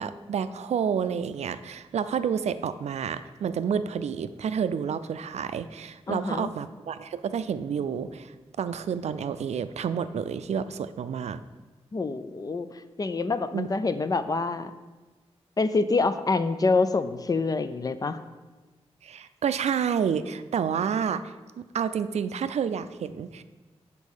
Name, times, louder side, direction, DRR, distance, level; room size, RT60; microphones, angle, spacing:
voice 1, 0.0-11.4 13.5-13.7 19.0-23.4, right 7 dB, 80° right, 12 dB, 0.4 m, -29 dB
voice 2, 6.1-6.5 11.9-12.7 13.0-14.7 15.6-18.2, left 3 dB, 35° left, 11 dB, 0.4 m, -26 dB
7.1 x 4.2 x 6.4 m, 1.2 s
wide cardioid pair, 95°, 11 cm